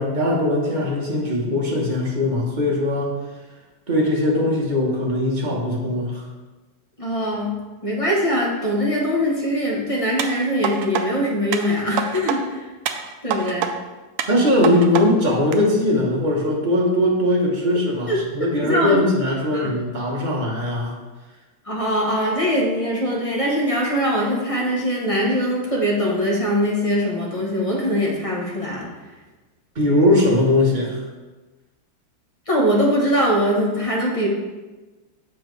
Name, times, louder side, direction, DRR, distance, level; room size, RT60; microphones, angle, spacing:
voice 1, 0.0-3.1 3.9-6.2 14.3-20.9 29.7-31.0, left 1 dB, 30° right, -2 dB, 0.9 m, -20 dB
voice 2, 7.0-7.5 7.8-12.6 13.2-13.7 18.1-19.0 19.5-19.7 21.6-28.9 32.5-34.3, equal, 25° left, -3 dB, 0.7 m, -22 dB
sound 1, 10.2-11.0 11.5-12.4 12.9-13.7 14.2-15.0 15.5-15.6, right 8 dB, 75° right, 0.9 m, -26 dB
7.1 x 5.8 x 3.2 m, 1.2 s
omnidirectional pair, 2.1 m